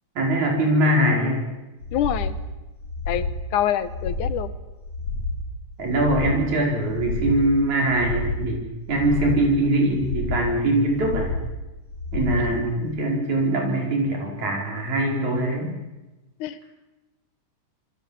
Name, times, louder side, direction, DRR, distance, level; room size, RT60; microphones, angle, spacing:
voice 1, 0.2-1.5 5.8-8.6 8.9-11.3 12.1-15.8, right 1 dB, 60° right, 0 dB, 6.4 m, -22 dB
sound 1, 1.8-2.4 2.8-3.4 3.8-4.4 4.8-5.4 5.8-6.4 6.8-7.4 7.8-8.4 8.8-9.4 9.8-10.4 10.9-11.4 11.9-12.5 12.9-13.0, left 3 dB, 55° left, 6.3 m, -29 dB
voice 2, 1.9-2.4 3.1-3.3 3.5-4.5 12.4-12.5 16.4-16.6, left 10 dB, 75° left, 13 dB, 2.4 m, -25 dB
27.0 x 22.0 x 7.3 m, 1.1 s
omnidirectional pair, 3.7 m